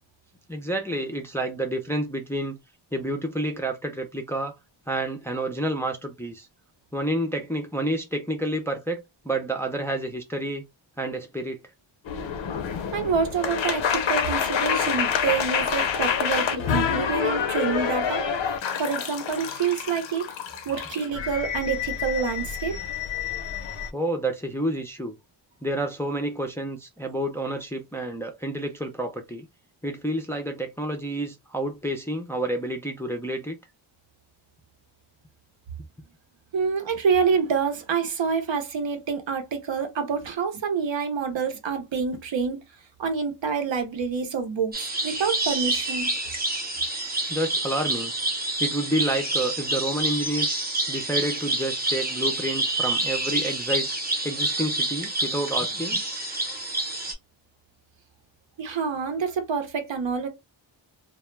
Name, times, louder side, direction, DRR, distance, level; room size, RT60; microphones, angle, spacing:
voice 1, 0.5-2.6 2.9-4.5 4.9-6.5 6.9-10.6 11.0-11.6 23.9-25.2 25.6-29.5 29.8-33.6 47.3-48.1 48.4-50.6 50.9-53.9 54.2-56.0, right 1 dB, 5° left, 0.4 m, -29 dB
sound 1, 12.0-23.9, left 7 dB, 70° left, 0.6 m, -27 dB
voice 2, 12.9-18.3 18.8-20.3 20.7-22.8 36.5-42.6 43.0-46.2 58.6-60.3, right 6 dB, 70° right, 0.7 m, -27 dB
sound 2, 44.7-57.1, right 2 dB, 20° right, 0.8 m, -28 dB
2.2 x 2.1 x 3.1 m
wide cardioid pair, 110°, 46 cm